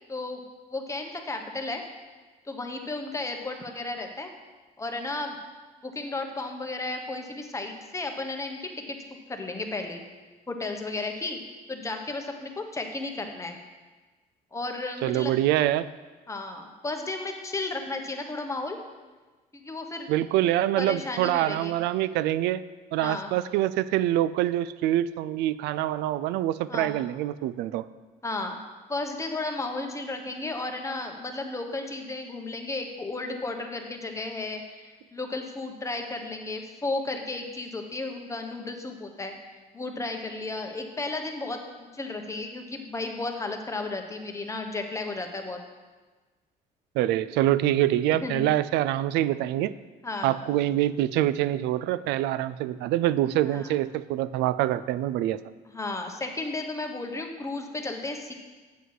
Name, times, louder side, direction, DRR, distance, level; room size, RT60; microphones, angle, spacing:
voice 1, 0.1-0.4 0.7-1.8 2.4-4.3 4.8-5.4 5.8-9.0 9.3-10.0 10.5-11.4 11.7-13.6 14.5-15.3 16.3-18.8 19.5-20.1 20.8-21.8 23.0-23.3 26.7-27.0 28.2-28.6 28.9-39.3 39.7-45.6 48.2-48.4 50.0-50.4 53.4-53.8 55.7-58.3, left 2 dB, 15° left, 4 dB, 1.1 m, -33 dB
voice 2, 15.0-15.9 20.1-22.6 22.9-27.9 47.0-49.7 50.2-55.4, right 13 dB, 85° right, 16 dB, 0.4 m, -25 dB
8.2 x 7.9 x 4.8 m, 1.3 s
cardioid pair, 110°, 17 cm